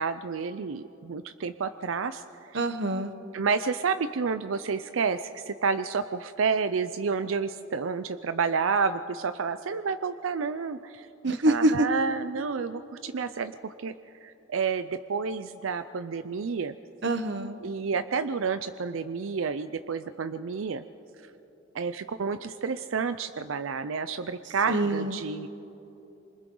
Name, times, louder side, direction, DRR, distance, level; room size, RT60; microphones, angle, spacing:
voice 1, 0.0-2.2 2.5-2.6 3.3-11.1 11.5-13.9 14.2-16.7 17.6-20.8 21.2-21.3 21.7-25.5, right 5 dB, 90° right, 11 dB, 0.5 m, -30 dB
voice 2, 2.5-3.1 11.2-11.9 17.0-17.6 24.7-25.2, right 1 dB, 60° right, 9 dB, 1.1 m, -25 dB
27.5 x 25.5 x 3.9 m, 3.0 s
head